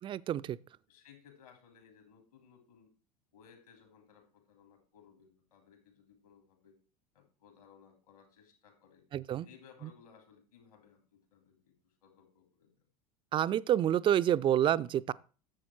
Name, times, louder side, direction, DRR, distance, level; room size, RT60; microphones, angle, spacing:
voice 1, 0.0-0.6 9.1-9.5 13.3-15.1, right 11 dB, 25° right, 0.4 m, -28 dB
voice 2, 0.9-2.9 3.3-6.8 7.1-9.0 9.4-12.9, left 7 dB, 65° left, 3.3 m, -61 dB
11.0 x 7.6 x 4.4 m
figure-of-eight pair, 80°, 20 cm